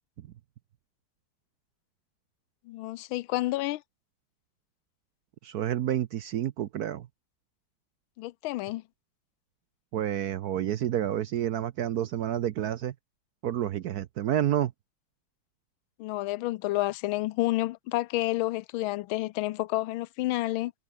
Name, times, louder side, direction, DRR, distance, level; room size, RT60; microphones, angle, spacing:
voice 1, 2.7-3.8 8.2-8.8 16.0-20.7, left 17 dB, 85° left, 1.4 m, -30 dB
voice 2, 5.4-7.1 9.9-12.9 13.4-14.7, right 11 dB, 65° right, 1.0 m, -29 dB
omnidirectional pair, 2.2 m